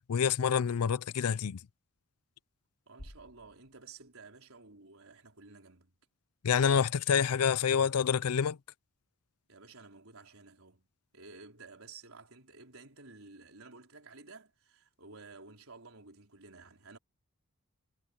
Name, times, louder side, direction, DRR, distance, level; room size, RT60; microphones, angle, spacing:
voice 1, 0.1-1.6 6.4-8.6, left 7 dB, 85° left, 0.5 m, -27 dB
voice 2, 2.9-5.9 9.5-10.9 11.1-17.0, right 3 dB, 70° right, 4.5 m, -53 dB
sound 1, 3.0-5.1, equal, 50° left, 4.1 m, -55 dB
head